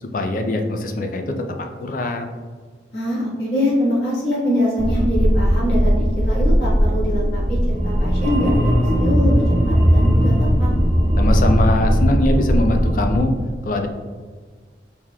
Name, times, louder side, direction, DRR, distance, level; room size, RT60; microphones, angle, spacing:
voice 1, 0.0-2.3 11.2-13.3 13.6-13.9, left 2 dB, 45° left, 5 dB, 0.4 m, -22 dB
voice 2, 2.9-10.7, left 1 dB, 65° left, -7 dB, 1.4 m, -23 dB
sound 1, 4.8-13.2, equal, 35° right, 0.8 m, -18 dB
4.6 x 3.6 x 2.2 m, 1.5 s
head